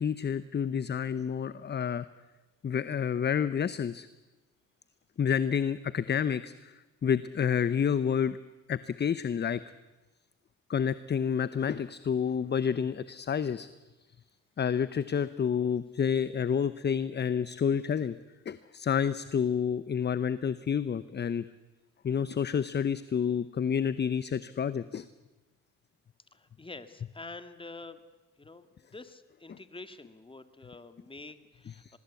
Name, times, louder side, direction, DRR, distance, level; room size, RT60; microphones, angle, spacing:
voice 1, 0.0-2.1 2.6-4.1 5.2-8.4 8.7-9.6 10.7-13.7 14.6-18.2 18.5-21.4 22.0-25.1 31.8-32.0, left 7 dB, 35° left, 15 dB, 0.8 m, -29 dB
voice 2, 26.3-28.0 28.4-28.7 28.9-32.0, left 3 dB, 15° left, 11 dB, 1.9 m, -47 dB
24.5 x 21.0 x 8.4 m, 1.1 s
cardioid pair, 90°, 30 cm